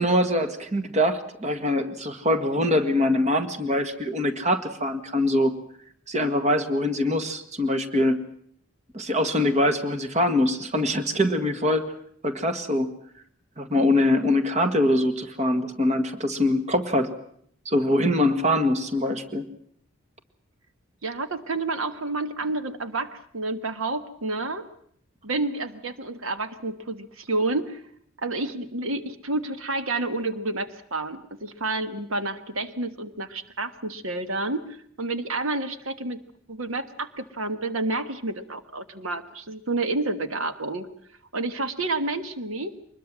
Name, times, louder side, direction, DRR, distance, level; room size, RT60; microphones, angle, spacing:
voice 1, 0.0-5.5 6.1-8.2 8.9-11.9 12.2-12.9 13.6-17.1 17.7-19.4, left 1 dB, 35° right, 9 dB, 1.8 m, -23 dB
voice 2, 21.0-24.7 25.2-27.8 28.2-36.2 36.5-40.9 41.3-42.7, right 2 dB, 80° right, 10 dB, 1.5 m, -29 dB
24.0 x 21.0 x 7.4 m, 0.64 s
head